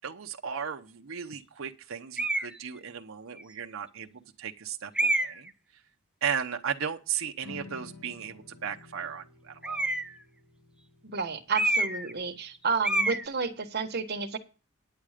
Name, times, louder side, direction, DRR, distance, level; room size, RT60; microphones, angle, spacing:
voice 1, 0.0-5.5 6.2-9.9, right 7 dB, 75° right, 3 dB, 0.8 m, -36 dB
sound 1, 2.2-2.6 3.4-3.5 4.9-5.5 9.6-10.2 11.5-12.1 12.4-12.6 12.8-13.2, right 2 dB, 5° right, 0.5 m, -27 dB
sound 2, 7.4-13.7, left 3 dB, 80° left, 5.3 m, -52 dB
voice 2, 11.0-14.4, right 5 dB, 50° right, 5 dB, 1.3 m, -31 dB
10.5 x 8.4 x 5.0 m, 0.33 s
head